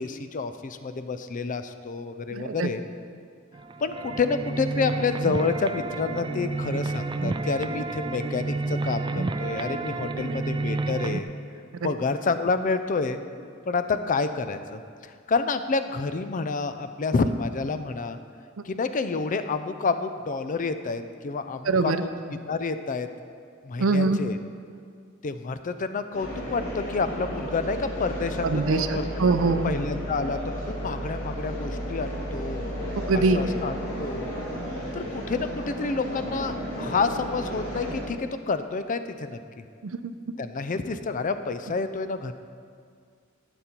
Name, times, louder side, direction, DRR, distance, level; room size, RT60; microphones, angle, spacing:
voice 1, 0.0-2.8 3.8-11.3 11.8-13.2 13.7-18.2 18.6-22.1 22.5-23.1 23.6-24.4 25.2-29.1 29.5-32.6 33.1-34.3 34.9-39.4 40.4-42.3, left 4 dB, 40° left, 10 dB, 0.5 m, -29 dB
voice 2, 2.3-2.7 10.2-10.3 11.8-11.9 21.7-22.0 23.8-24.2 28.4-29.7 33.1-33.4 39.8-40.1, right 3 dB, 70° right, 9 dB, 0.6 m, -23 dB
sound 1, 3.5-11.2, right 3 dB, 25° right, 0.3 m, -30 dB
sound 2, 26.1-38.0, equal, 80° left, 2.7 m, -33 dB
12.5 x 7.1 x 4.4 m, 2.2 s
head